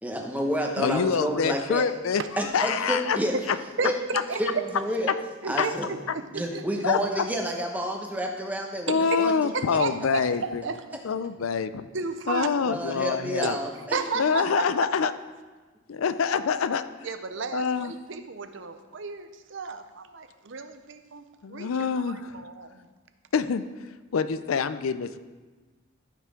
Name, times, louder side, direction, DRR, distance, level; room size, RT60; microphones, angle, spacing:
voice 1, 0.0-1.9 2.4-3.3 3.8-3.9 4.3-5.1 5.4-5.9 6.3-9.8 12.6-14.5, equal, 10° right, 1 dB, 0.9 m, -30 dB
voice 2, 0.8-2.2 2.5-3.2 5.6-5.7 6.8-7.0 8.9-10.6 11.0-11.9 12.3-13.6 14.2-15.1 15.9-16.8 17.5-17.9 21.4-22.4 23.3-23.6 24.1-25.2, left 6 dB, 90° left, 12 dB, 0.4 m, -26 dB
voice 3, 3.8-4.4 5.4-6.0 6.3-6.6 8.9-9.2 9.5-10.2 10.6-10.8 11.9-12.5 13.9-14.6 17.0-22.8, right 4 dB, 65° right, 9 dB, 0.6 m, -33 dB
14.0 x 5.8 x 3.7 m, 1.3 s
head